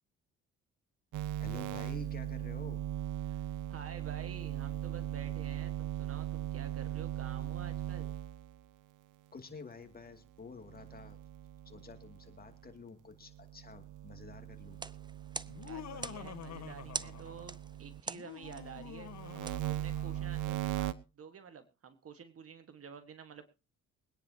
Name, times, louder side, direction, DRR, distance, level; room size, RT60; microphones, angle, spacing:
sound 1, 1.1-8.6 10.6-12.7 13.2-18.0 18.4-20.9, right 13 dB, 80° right, 0.9 m, -39 dB
voice 1, 1.4-2.8 9.3-11.2 11.6-14.8, left 4 dB, 30° left, 6 dB, 2.4 m, -49 dB
voice 2, 3.7-8.1 15.6-19.1 19.7-23.5, right 6 dB, 50° right, 9 dB, 1.6 m, -50 dB
sound 2, 14.6-20.4, right 4 dB, 15° right, 0.5 m, -46 dB
Laughter, 15.5-17.6 18.1-20.4, left 9 dB, 60° left, 1.4 m, -48 dB
23.5 x 9.9 x 2.9 m, 0.30 s
cardioid pair, 90°, 30 cm